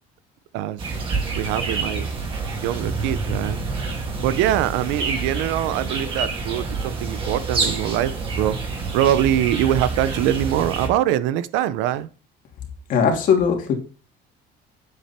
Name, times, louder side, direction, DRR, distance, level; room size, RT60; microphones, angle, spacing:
sound 1, 0.8-10.9, right 4 dB, 30° right, 2.7 m, -27 dB
voice 1, 1.3-2.1 2.6-3.6 4.2-8.6 8.9-12.1, right 12 dB, 85° right, 0.8 m, -23 dB
voice 2, 12.9-13.7, left 6 dB, 45° left, 2.9 m, -19 dB
9.2 x 7.8 x 4.4 m
cardioid pair, 155°, 18 cm